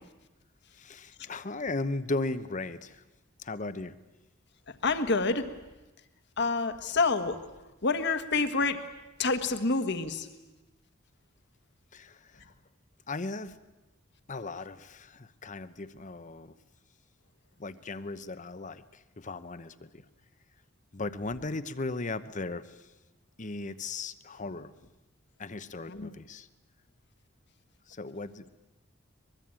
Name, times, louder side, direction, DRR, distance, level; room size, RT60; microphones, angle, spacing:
voice 1, 0.7-3.0 3.4-4.0 11.9-12.4 13.1-13.6 14.3-16.5 17.6-20.0 20.9-22.9 23.4-24.7 25.4-26.5 27.9-28.5, left 3 dB, 40° left, 13 dB, 0.9 m, -37 dB
voice 2, 4.8-5.5 6.4-7.4 7.8-8.8 9.2-10.3 25.9-26.1, left 3 dB, 55° left, 9 dB, 1.6 m, -27 dB
23.5 x 21.5 x 8.9 m, 1.1 s
head